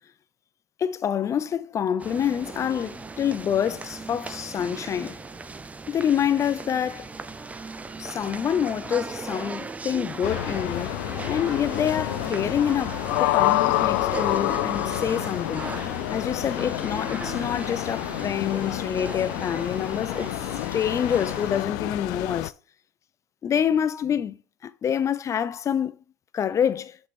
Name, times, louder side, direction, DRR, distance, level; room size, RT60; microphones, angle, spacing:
voice 1, 0.8-5.2 5.9-7.1 8.0-11.0 11.3-15.7 16.1-20.3 20.7-22.5 23.4-24.4 24.6-26.0 26.3-27.0, left 8 dB, 30° left, 0.6 m, -27 dB
sound 1, 2.0-21.6, right 3 dB, 15° right, 0.6 m, -38 dB
sound 2, 10.2-22.5, left 17 dB, 75° left, 0.4 m, -28 dB
6.6 x 5.4 x 4.3 m
supercardioid pair, 110°, 10 cm